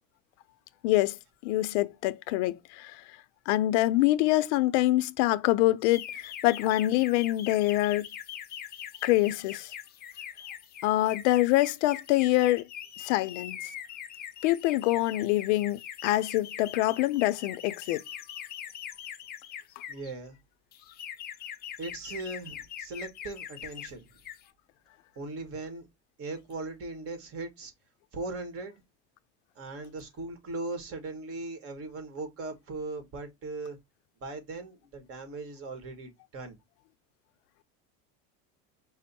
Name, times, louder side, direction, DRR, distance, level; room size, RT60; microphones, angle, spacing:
voice 1, 0.8-3.0 3.5-8.1 9.0-9.7 10.8-12.7 13.0-13.6 14.4-18.0, left 17 dB, 80° left, 0.5 m, -25 dB
sound 1, 5.8-20.1 20.7-23.9 24.2-24.5, left 10 dB, 30° left, 0.5 m, -42 dB
voice 2, 19.9-20.4 21.8-24.1 25.2-25.9 26.2-27.7 28.1-28.7 29.5-33.8 34.2-36.6, right 2 dB, 40° right, 1.4 m, -39 dB
5.2 x 2.0 x 4.1 m
supercardioid pair, 135°, 35 cm